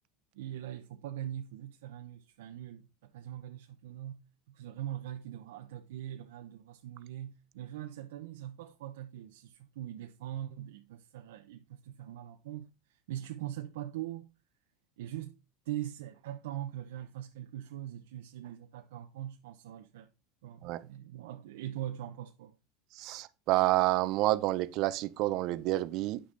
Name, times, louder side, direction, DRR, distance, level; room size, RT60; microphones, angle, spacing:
voice 1, 0.3-14.3 15.0-15.4 15.6-20.1 20.4-22.6, right 12 dB, 80° right, 1.0 m, -42 dB
voice 2, 22.9-26.2, right 17 dB, 55° right, 0.9 m, -29 dB
9.6 x 6.2 x 4.0 m
supercardioid pair, 115°, 0 cm